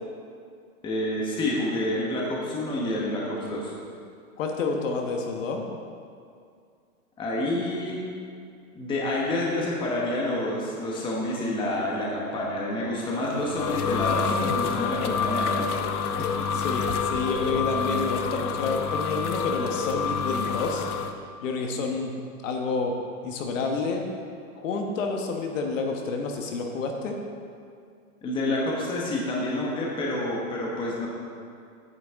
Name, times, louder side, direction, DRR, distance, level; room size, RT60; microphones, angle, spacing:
voice 1, 0.8-3.8 7.2-8.0 8.7-15.8 16.2-16.6 28.2-31.1, left 1 dB, 10° left, -4 dB, 1.1 m, -28 dB
voice 2, 4.4-5.6 14.4-14.5 16.5-20.9 21.4-22.1 22.4-22.9 23.2-24.0 24.6-27.1, left 4 dB, 60° left, 2 dB, 1.4 m, -29 dB
sound 1, 13.1-21.1, left 6 dB, 85° left, 0.9 m, -28 dB
10.5 x 9.3 x 3.6 m, 2.3 s
hypercardioid pair, 155°, 44 cm